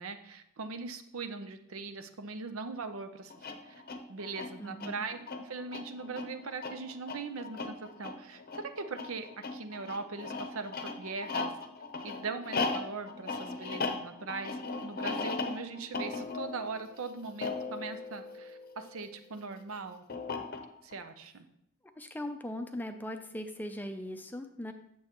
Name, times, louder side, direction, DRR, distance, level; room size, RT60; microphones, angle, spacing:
voice 1, 0.0-3.3 3.6-3.7 4.1-11.5 12.0-20.0 20.8-21.4, right 4 dB, 75° right, 8 dB, 0.7 m, -40 dB
sound 1, 3.3-19.1 20.1-21.0, left 3 dB, 45° left, 0.7 m, -38 dB
voice 2, 4.6-5.1 22.0-24.7, left 1 dB, 10° left, 6 dB, 0.5 m, -39 dB
8.6 x 7.0 x 3.0 m, 0.77 s
head